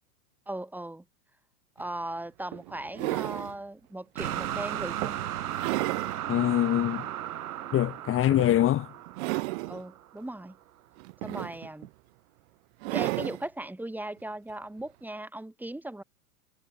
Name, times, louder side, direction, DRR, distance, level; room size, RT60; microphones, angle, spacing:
voice 1, 0.5-1.0 1.8-5.2 9.7-10.6 11.2-11.9 12.9-16.0, right 1 dB, 5° right, 6.0 m, -38 dB
sound 1, 1.8-1.9 2.5-3.6 4.2-4.4 5.0-6.2 6.7-6.8 8.3-8.7 9.1-9.8 11.0-11.9 12.8-13.4 14.8-14.9, right 25 dB, 45° right, 0.9 m, -33 dB
sound 2, 4.2-10.2, right 12 dB, 70° right, 2.0 m, -35 dB
voice 2, 6.3-7.1 7.7-8.9, left 13 dB, 30° left, 2.7 m, -24 dB
hypercardioid pair, 110°, 45 cm